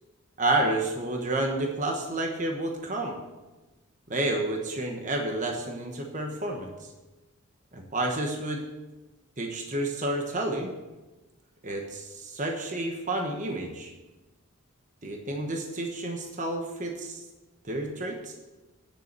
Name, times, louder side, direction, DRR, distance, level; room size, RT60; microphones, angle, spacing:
voice 1, 0.4-3.2 4.1-6.9 7.7-8.6 9.4-10.7 11.6-13.9 15.0-17.2 17.6-18.3, right 2 dB, 35° right, 2 dB, 1.1 m, -30 dB
10.0 x 6.9 x 6.7 m, 1.1 s
head